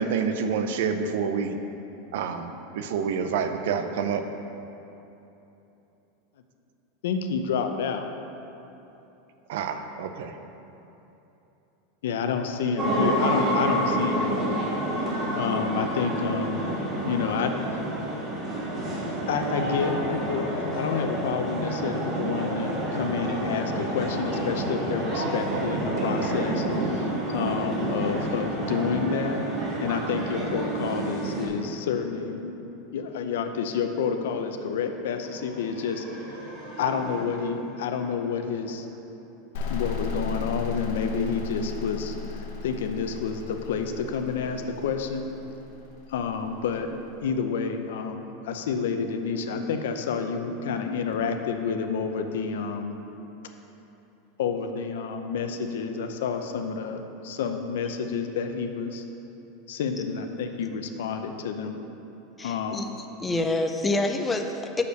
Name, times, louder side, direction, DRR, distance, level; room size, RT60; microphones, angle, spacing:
voice 1, 0.0-1.6 2.1-4.2 9.5-10.3, right 6 dB, 65° right, 8 dB, 0.6 m, -28 dB
voice 2, 7.0-8.1 12.0-14.7 15.4-16.7 17.0-18.1 19.3-27.1 27.3-29.4 29.8-32.5 32.9-36.4 36.8-38.9 39.7-45.3 46.1-46.9 47.2-53.0 54.4-59.0 59.7-61.8 62.4-62.9, left 6 dB, 85° left, 6 dB, 0.7 m, -29 dB
sound 1, 12.8-31.5, right 1 dB, 20° right, 1.4 m, -28 dB
sound 2, 35.1-39.2, right 1 dB, 40° right, 1.6 m, -44 dB
sound 3, 39.5-47.1, left 5 dB, 60° left, 0.9 m, -36 dB
voice 3, 62.4-62.9 63.2-64.8, left 2 dB, 10° left, 5 dB, 0.4 m, -27 dB
6.6 x 5.3 x 6.6 m, 3.0 s
supercardioid pair, 170°, 0 cm